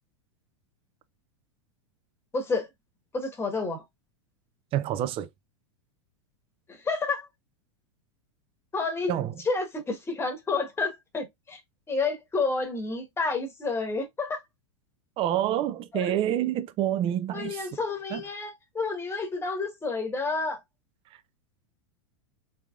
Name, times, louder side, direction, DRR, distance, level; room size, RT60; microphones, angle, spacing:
voice 1, 2.3-2.7 3.1-3.8 6.7-7.3 8.7-9.1 9.4-11.6 11.9-14.4 15.9-16.1 17.3-20.6, left 3 dB, 15° left, 1.2 m, -30 dB
voice 2, 4.7-5.3 9.1-9.3 15.2-17.6 18.1-18.2, right 11 dB, 35° right, 0.5 m, -27 dB
3.5 x 3.4 x 2.3 m
hypercardioid pair, 100°, 16 cm